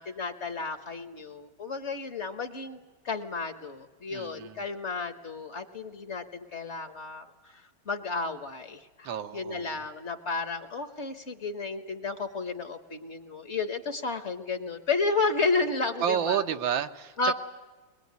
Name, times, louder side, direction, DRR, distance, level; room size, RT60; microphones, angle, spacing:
voice 1, 0.0-2.8 3.0-16.4 17.2-17.3, left 3 dB, 40° left, 9 dB, 1.3 m, -32 dB
voice 2, 4.1-4.6 9.0-9.8 16.0-17.3, right 9 dB, 85° right, 8 dB, 1.8 m, -30 dB
22.5 x 21.0 x 9.5 m, 1.3 s
omnidirectional pair, 2.0 m